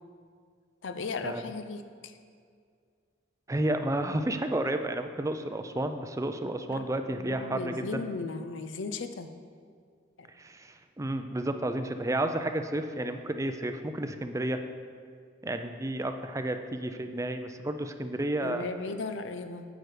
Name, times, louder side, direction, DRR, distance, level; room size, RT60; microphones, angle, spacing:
voice 1, 0.8-2.1 6.7-9.3 10.2-10.3 18.4-19.7, left 4 dB, 80° left, 9 dB, 0.6 m, -36 dB
voice 2, 3.5-8.0 10.3-14.6 15.4-18.7, right 1 dB, 15° right, 7 dB, 0.5 m, -31 dB
9.0 x 8.1 x 5.0 m, 2.1 s
head